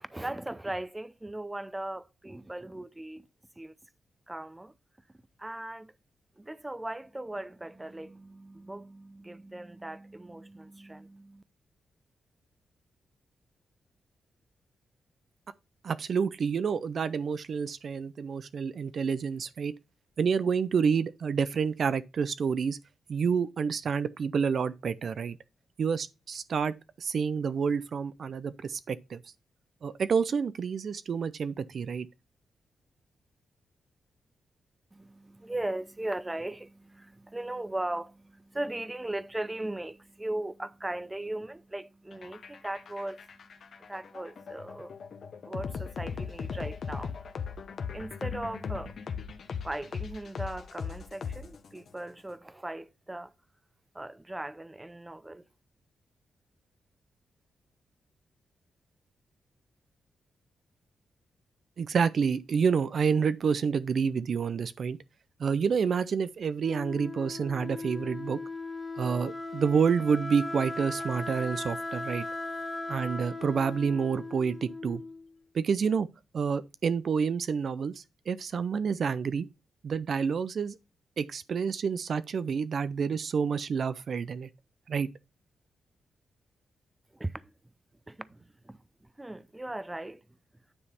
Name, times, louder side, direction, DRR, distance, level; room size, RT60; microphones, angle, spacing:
voice 1, 0.0-3.3 3.6-3.7 4.3-4.7 5.4-5.9 6.4-11.4 34.9-47.1 47.9-48.9 49.6-53.3 53.9-55.4 87.1-87.5 88.1-90.2, right 1 dB, 15° right, 0.6 m, -38 dB
voice 2, 15.8-19.7 20.2-22.8 23.1-25.4 25.8-29.2 29.8-32.1 61.8-65.0 65.4-68.4 69.0-72.2 72.9-75.0 75.5-76.1 76.3-79.5 79.8-80.8 81.2-84.5 84.9-85.1, right 6 dB, 60° right, 0.4 m, -28 dB
sound 1, 42.1-51.9, left 6 dB, 65° left, 1.0 m, -38 dB
Wind instrument woodwind instrument, 66.6-75.3, left 2 dB, 30° left, 0.9 m, -38 dB
9.7 x 3.2 x 5.5 m
cardioid pair, 70°, 0 cm